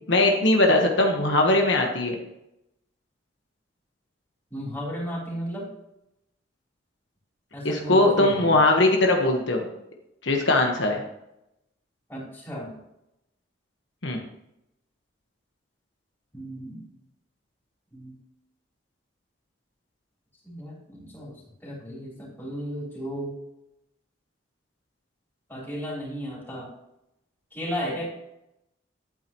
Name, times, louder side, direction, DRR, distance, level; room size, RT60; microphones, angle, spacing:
voice 1, 0.1-2.2 7.6-9.6 10.2-11.0 14.0-14.2, left 2 dB, 70° left, 1 dB, 1.3 m, -20 dB
voice 2, 4.5-5.7 7.5-8.5 12.1-12.8 16.3-16.8 17.9-18.1 20.4-21.4 21.6-23.3 25.5-26.7 27.5-28.1, equal, 10° left, -5 dB, 3.7 m, -34 dB
11.5 x 8.7 x 3.1 m, 0.84 s
head